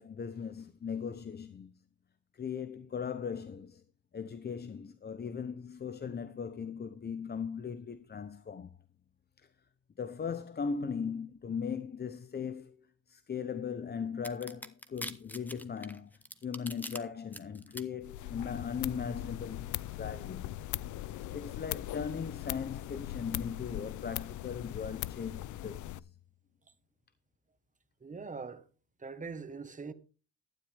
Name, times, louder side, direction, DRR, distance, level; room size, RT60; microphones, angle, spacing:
voice 1, 0.0-1.8 2.3-3.8 4.1-8.8 9.4-9.5 10.0-20.6 21.3-26.1, left 6 dB, 35° left, 0.8 m, -38 dB
sound 1, 14.2-17.0 17.3-17.8, left 1 dB, 5° left, 1.1 m, -42 dB
sound 2, 18.0-26.0, left 14 dB, 75° left, 0.6 m, -40 dB
voice 2, 28.0-28.7 29.0-29.9, right 4 dB, 25° right, 1.4 m, -42 dB
12.5 x 9.8 x 3.5 m
cardioid pair, 90°, 30 cm